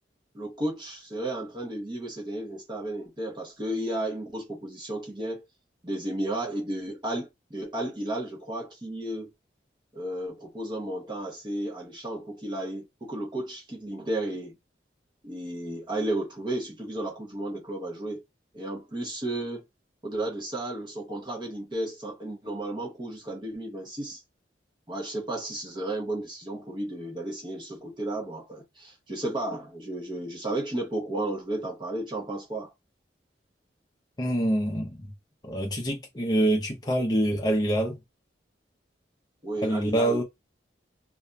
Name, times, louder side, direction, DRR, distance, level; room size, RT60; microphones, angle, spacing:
voice 1, 0.3-5.4 5.8-9.3 9.9-14.6 15.2-18.2 18.5-19.6 20.0-24.2 24.9-32.7 39.4-40.2, right 1 dB, 25° right, 0.7 m, -33 dB
voice 2, 34.2-35.1 35.4-38.0 39.6-40.2, right 1 dB, 20° left, 0.5 m, -25 dB
2.7 x 2.4 x 2.2 m
head